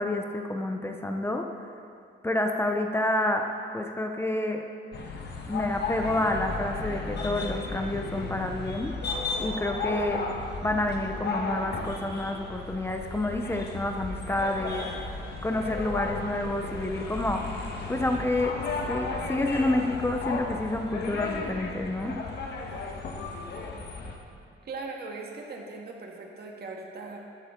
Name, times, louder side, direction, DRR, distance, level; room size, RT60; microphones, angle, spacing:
voice 1, 0.0-1.5 2.2-3.5 3.7-4.6 5.5-8.9 9.4-14.9 15.4-17.4 17.9-22.2, left 1 dB, 10° left, 3 dB, 0.8 m, -29 dB
sound 1, 4.9-24.2, left 3 dB, 55° left, 1.5 m, -34 dB
voice 2, 24.6-27.3, right 3 dB, 55° right, 0 dB, 1.8 m, -39 dB
13.0 x 9.6 x 3.8 m, 2.5 s
cardioid pair, 90°, 20 cm